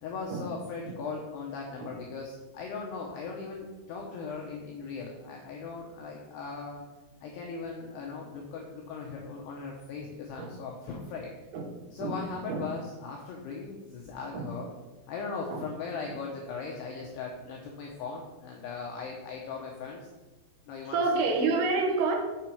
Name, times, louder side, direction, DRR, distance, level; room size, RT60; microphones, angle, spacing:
voice 1, 0.0-6.8 7.2-11.3 11.9-14.7 15.1-20.1 20.7-21.4, left 4 dB, 85° left, 0 dB, 2.3 m, -39 dB
voice 2, 20.9-22.2, right 3 dB, 80° right, 2 dB, 3.6 m, -26 dB
7.4 x 7.0 x 4.5 m, 1.2 s
omnidirectional pair, 5.9 m